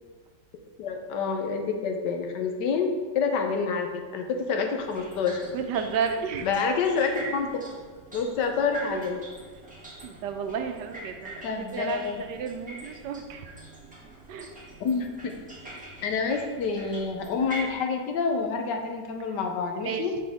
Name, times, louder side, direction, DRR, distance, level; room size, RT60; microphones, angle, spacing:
voice 1, 0.8-2.9 3.1-5.4 6.4-7.6 8.1-9.2 11.4-12.2 14.8-15.3 16.0-20.1, left 5 dB, 75° left, 4 dB, 1.3 m, -28 dB
sound 1, 4.8-17.7, right 2 dB, 5° right, 1.1 m, -43 dB
voice 2, 5.5-6.5 8.9-9.0 10.0-13.5 14.3-14.5 19.8-20.0, right 6 dB, 75° right, 6 dB, 1.2 m, -32 dB
5.9 x 5.0 x 3.5 m, 1.4 s
omnidirectional pair, 1.9 m